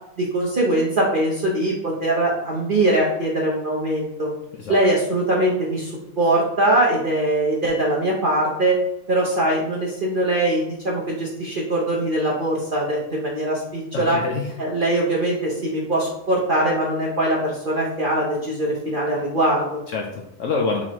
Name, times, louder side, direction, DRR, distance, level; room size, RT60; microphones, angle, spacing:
voice 1, 0.2-4.3 4.7-8.8 9.1-14.2 14.6-19.8, right 1 dB, 50° right, -4 dB, 0.6 m, -22 dB
voice 2, 13.9-14.6 19.9-20.8, left 4 dB, 70° left, 1 dB, 0.7 m, -26 dB
4.4 x 4.2 x 2.9 m, 0.82 s
omnidirectional pair, 1.7 m